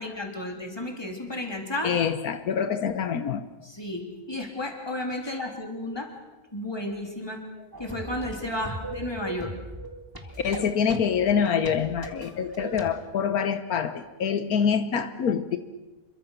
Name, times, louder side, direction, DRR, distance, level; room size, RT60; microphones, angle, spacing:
voice 1, 0.0-2.0 3.6-4.0 4.3-6.1 6.5-7.4 7.8-9.5 10.3-10.4 12.3-12.4, left 1 dB, 15° left, 2 dB, 3.7 m, -33 dB
voice 2, 1.8-3.4 10.2-15.6, left 7 dB, 80° left, 10 dB, 1.5 m, -26 dB
sound 1, 7.7-12.9, right 2 dB, 15° right, 2.2 m, -39 dB
27.5 x 23.0 x 6.7 m, 1.1 s
omnidirectional pair, 1.5 m